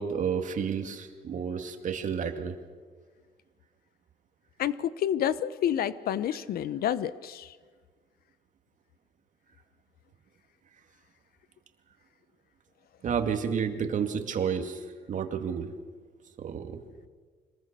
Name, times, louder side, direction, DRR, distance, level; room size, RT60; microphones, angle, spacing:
voice 1, 0.0-2.5 13.0-15.7 16.4-16.8, right 7 dB, 50° right, 6 dB, 2.3 m, -31 dB
voice 2, 4.6-7.5, left 10 dB, 65° left, 16 dB, 0.9 m, -29 dB
25.5 x 20.5 x 6.8 m, 1.5 s
cardioid pair, 110°, 17 cm